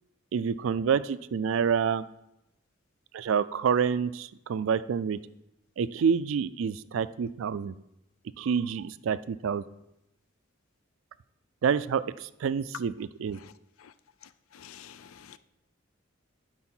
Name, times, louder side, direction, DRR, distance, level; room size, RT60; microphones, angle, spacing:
voice 1, 0.3-2.0 3.1-5.2 5.8-7.7 8.4-9.6 11.6-13.4, right 6 dB, 70° right, 0.3 m, -28 dB
voice 2, 14.5-15.4, left 9 dB, 90° left, 0.4 m, -49 dB
11.0 x 4.7 x 4.4 m
head